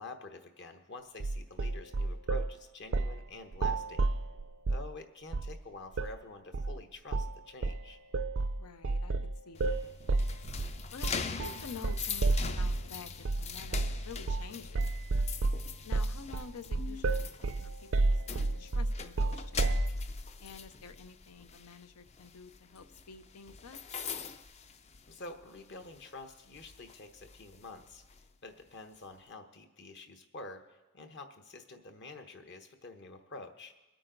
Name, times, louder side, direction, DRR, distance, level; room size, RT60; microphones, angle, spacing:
voice 1, 0.0-4.1 4.7-8.0 25.1-28.0 28.4-33.7, left 2 dB, 50° left, 6 dB, 1.1 m, -48 dB
sound 1, 1.2-2.5 2.9-3.2 3.5-4.9 5.3-5.6 5.9-6.2 6.5-6.8 7.1-7.4 7.6-12.8 13.2-13.4 13.7-14.0 14.3-14.5 14.7-19.9, right 3 dB, 60° right, 0.5 m, -31 dB
voice 2, 8.5-9.1 9.4-9.9 10.9-13.1 13.4-14.9 15.8-17.5 17.8-19.8 20.4-23.8, left 5 dB, 80° left, 12 dB, 0.7 m, -49 dB
sound 2, 9.5-25.5 25.8-26.1 26.6-28.2, left 4 dB, 30° left, 0.4 m, -41 dB
22.5 x 9.1 x 3.9 m, 1.1 s
head